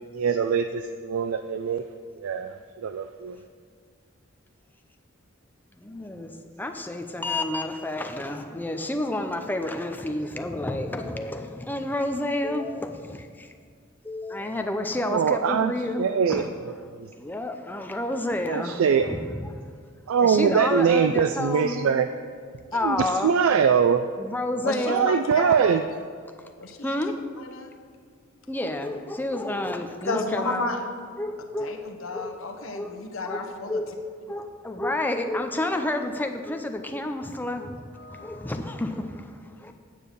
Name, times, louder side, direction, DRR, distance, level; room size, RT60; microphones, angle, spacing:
voice 1, 0.1-1.8 2.2-2.5 2.8-3.4 15.1-16.7 17.0-17.1 18.5-19.1 20.1-22.1 22.8-24.1 24.9-25.8, right 6 dB, 90° right, 9 dB, 0.4 m, -23 dB
voice 2, 5.8-6.3 6.6-13.5 14.0-16.5 17.2-19.5 20.2-21.9 22.7-23.3 24.2-25.1 26.8-27.1 28.5-30.8 31.2-31.9 32.1-32.4 32.7-32.9 33.2-33.9 34.3-37.8 38.1-39.7, left 1 dB, 10° left, 5 dB, 0.6 m, -30 dB
voice 3, 24.6-26.0 26.6-27.0 27.4-27.7 30.0-30.8 31.6-33.8 38.0-38.5, left 3 dB, 80° left, 4 dB, 1.0 m, -33 dB
9.2 x 6.6 x 5.2 m, 2.1 s
head